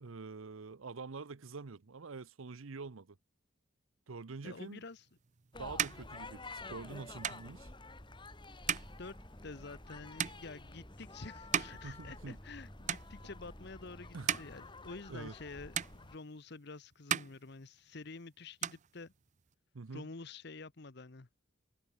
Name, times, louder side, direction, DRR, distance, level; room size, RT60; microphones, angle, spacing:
voice 1, 0.0-3.2 4.1-4.8 5.6-7.7 11.8-12.4 14.1-14.4 15.1-15.3 19.7-20.1, right 4 dB, 80° right, 0.7 m, -46 dB
voice 2, 4.4-5.1 9.0-9.1 9.4-19.1 19.9-21.3, left 3 dB, 55° left, 0.9 m, -49 dB
sound 1, 4.9-12.6 12.8-13.6 14.0-15.5 15.7-16.6 16.9-18.2 18.4-19.5, right 9 dB, 35° right, 0.5 m, -39 dB
sound 2, 5.5-16.2, left 3 dB, 25° left, 2.3 m, -51 dB
sound 3, 8.6-14.1, equal, 5° left, 1.6 m, -55 dB
head